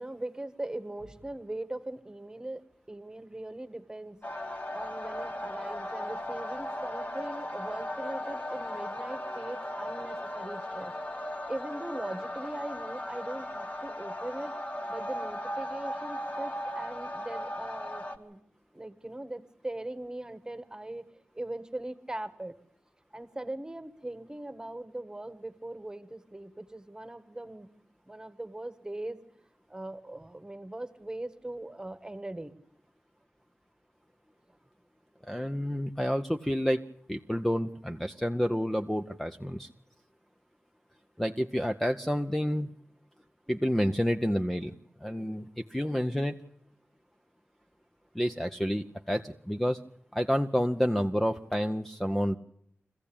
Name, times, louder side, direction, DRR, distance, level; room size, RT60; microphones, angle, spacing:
voice 1, 0.0-2.6 2.9-4.2 4.7-10.9 11.5-14.6 14.9-18.4 18.7-22.6 23.1-27.7 28.0-29.2 29.7-32.5, right 1 dB, 15° right, 11 dB, 1.5 m, -40 dB
sound 1, 4.2-18.2, left 1 dB, 35° left, 1.8 m, -37 dB
voice 2, 35.2-36.8 37.1-39.7 41.2-42.7 43.5-44.7 45.0-46.4 48.1-49.8 50.1-52.4, equal, 5° left, 6 dB, 0.7 m, -29 dB
23.5 x 15.0 x 8.7 m, 0.75 s
wide cardioid pair, 105°, 4 cm